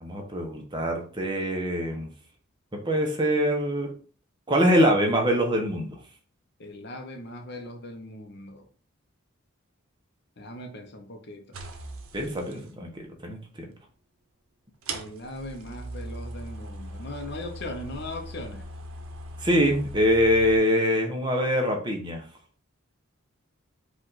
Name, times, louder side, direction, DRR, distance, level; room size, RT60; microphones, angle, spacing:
voice 1, 0.0-2.1 2.7-3.9 4.5-6.0 12.1-13.7 19.4-22.2, equal, 20° right, 0.9 m, -24 dB
voice 2, 6.6-8.7 10.4-11.5 14.9-18.6, left 1 dB, 50° left, 0.8 m, -39 dB
sound 1, 11.5-12.6 13.9-14.0 14.8-20.6, right 1 dB, 80° right, 0.7 m, -39 dB
5.0 x 2.5 x 4.0 m
head